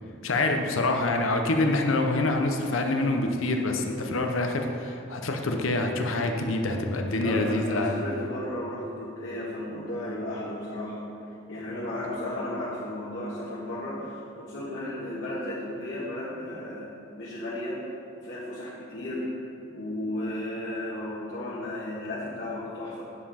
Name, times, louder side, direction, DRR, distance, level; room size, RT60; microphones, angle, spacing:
voice 1, 0.2-8.0, left 2 dB, 80° left, 4 dB, 0.8 m, -26 dB
voice 2, 7.0-11.1 11.5-17.8 18.2-19.4 19.7-23.0, left 1 dB, 65° left, -10 dB, 1.8 m, -34 dB
9.8 x 7.4 x 4.2 m, 2.6 s
head